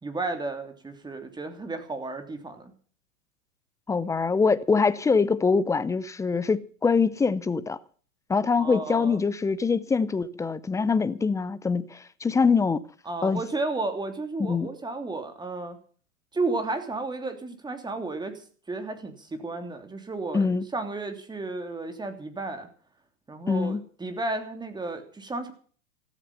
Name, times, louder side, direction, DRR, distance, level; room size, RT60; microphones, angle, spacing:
voice 1, 0.0-2.7 8.6-9.2 13.1-15.8 16.3-22.7 23.3-25.5, right 3 dB, 10° right, 3.1 m, -33 dB
voice 2, 3.9-7.8 8.3-12.8 13.2-13.4 14.4-14.7 20.3-20.7 23.5-23.8, left 4 dB, 5° left, 0.6 m, -24 dB
15.5 x 13.5 x 5.6 m
hypercardioid pair, 120°, 44 cm